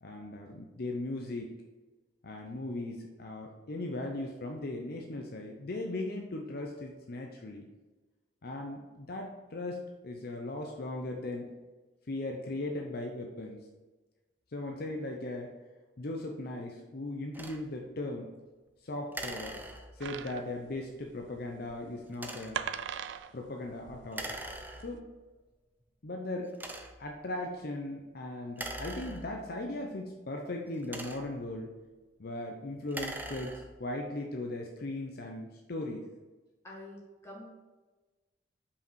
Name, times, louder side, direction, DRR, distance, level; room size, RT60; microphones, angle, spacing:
voice 1, 0.0-1.6 2.2-7.6 8.4-11.5 12.1-13.6 14.5-15.5 16.0-18.3 18.8-19.6 19.9-22.6 23.3-24.3 24.8-25.1 26.0-26.5 27.0-31.7 32.2-36.0, left 2 dB, 55° left, 1 dB, 0.7 m, -38 dB
sound 1, 17.3-17.6 19.1-20.2 22.1-22.7 24.1-25.1 25.8-25.9 26.5-27.1 28.5-29.6 30.6-31.5 32.8-33.9, right 1 dB, 10° right, 0.5 m, -42 dB
sound 2, 20.0-24.9, right 8 dB, 70° right, 0.3 m, -41 dB
voice 2, 36.6-37.5, left 1 dB, 15° left, -4 dB, 1.8 m, -47 dB
5.7 x 5.0 x 4.6 m, 1.2 s
head